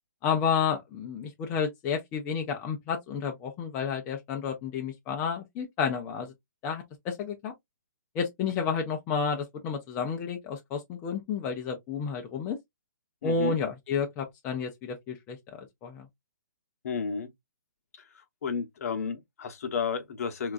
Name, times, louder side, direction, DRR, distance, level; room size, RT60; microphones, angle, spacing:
voice 1, 0.2-6.3 6.6-7.5 8.1-12.6 13.2-16.1, left 6 dB, 15° left, 0.4 m, -31 dB
voice 2, 13.2-13.6 16.8-17.3 18.4-20.5, left 5 dB, 50° left, 0.8 m, -32 dB
3.6 x 2.3 x 2.4 m
hypercardioid pair, 160°, 10 cm